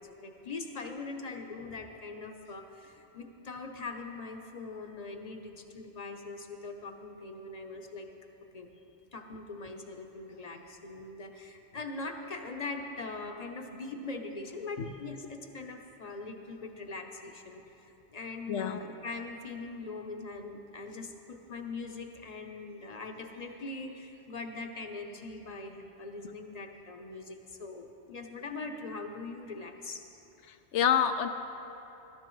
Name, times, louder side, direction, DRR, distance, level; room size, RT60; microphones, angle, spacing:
voice 1, 0.0-8.1 8.5-8.7 9.1-30.0 31.1-31.3, left 3 dB, 40° left, 4 dB, 0.8 m, -42 dB
voice 2, 18.5-18.8 30.5-31.3, left 9 dB, 85° left, 8 dB, 0.9 m, -27 dB
17.5 x 13.5 x 3.1 m, 2.9 s
omnidirectional pair, 1.2 m